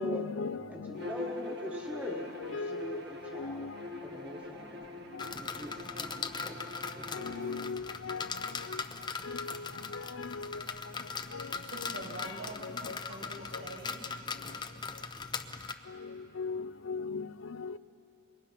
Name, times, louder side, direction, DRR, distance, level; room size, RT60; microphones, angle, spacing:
voice 1, 0.0-3.9 5.1-5.2 7.1-8.8 9.2-10.6 11.3-11.9 12.2-12.3 12.6-13.0 13.5-13.6 15.9-17.8, left 4 dB, 70° left, 0.6 m, -40 dB
voice 2, 0.7-3.6 4.0-4.9 5.3-7.3, equal, 5° right, 1.5 m, -42 dB
Bowed string instrument, 0.9-7.7, left 2 dB, 50° right, 1.3 m, -44 dB
sound 1, 5.2-15.7, left 5 dB, 20° left, 0.7 m, -40 dB
voice 3, 11.6-14.2, right 1 dB, 85° right, 5.9 m, -45 dB
26.5 x 22.5 x 5.8 m
head